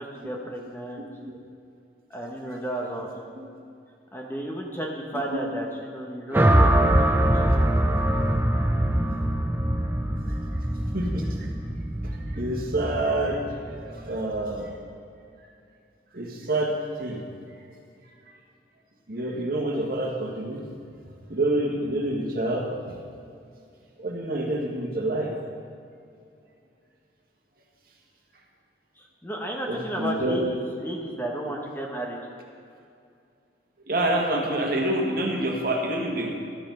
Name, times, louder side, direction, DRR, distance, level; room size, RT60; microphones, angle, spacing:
voice 1, 0.0-1.1 2.1-3.1 4.1-7.4 29.0-32.2, right 1 dB, 10° left, -1 dB, 0.9 m, -33 dB
sound 1, 6.3-14.6, right 1 dB, 10° right, 0.5 m, -23 dB
voice 2, 10.9-11.5 12.0-14.7 16.1-16.7 17.0-17.2 19.1-20.6 21.3-22.9 24.0-25.3 29.7-30.5 33.9-36.3, right 1 dB, 50° right, 0 dB, 1.5 m, -27 dB
12.5 x 7.0 x 5.4 m, 2.4 s
head